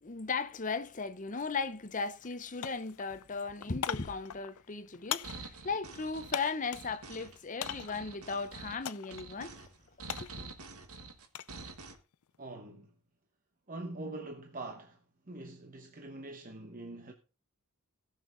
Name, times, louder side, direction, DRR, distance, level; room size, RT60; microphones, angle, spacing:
voice 1, 0.0-9.5 10.2-10.5, left 4 dB, 35° left, 0.7 m, -37 dB
sound 1, 1.4-1.5 1.9-2.4 2.6-6.9 7.6-8.1 8.9-9.3 9.6-11.6 11.9-12.4, left 10 dB, 75° left, 0.5 m, -41 dB
sound 2, 5.2-11.9, right 4 dB, 80° right, 1.5 m, -47 dB
voice 2, 12.4-12.9 13.7-15.0 15.3-17.1, right 2 dB, 35° right, 1.0 m, -43 dB
18.0 x 6.6 x 3.9 m
head